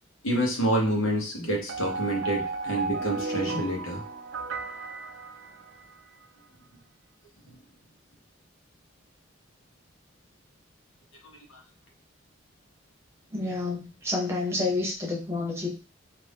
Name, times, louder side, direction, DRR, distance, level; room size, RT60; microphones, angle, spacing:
voice 1, 0.2-4.0 11.5-11.6, right 1 dB, 80° left, -1 dB, 1.1 m, -27 dB
sound 1, 1.7-6.0, right 3 dB, 70° right, 0.5 m, -34 dB
voice 2, 13.3-15.7, left 2 dB, 15° right, -2 dB, 0.8 m, -29 dB
2.6 x 2.5 x 3.4 m, 0.33 s
head